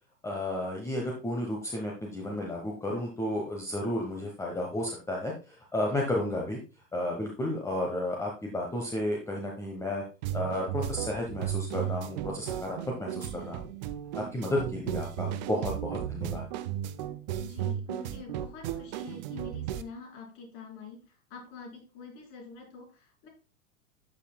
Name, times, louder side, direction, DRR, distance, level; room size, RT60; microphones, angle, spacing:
voice 1, 0.2-6.6 6.9-10.0 10.3-13.6 14.1-16.4, left 1 dB, 5° left, -1 dB, 1.1 m, -32 dB
sound 1, 10.2-19.8, right 11 dB, 35° right, 0.4 m, -35 dB
voice 2, 17.4-23.3, left 4 dB, 45° left, -1 dB, 4.1 m, -46 dB
12.0 x 5.9 x 2.3 m, 0.32 s
figure-of-eight pair, 90°, 42 cm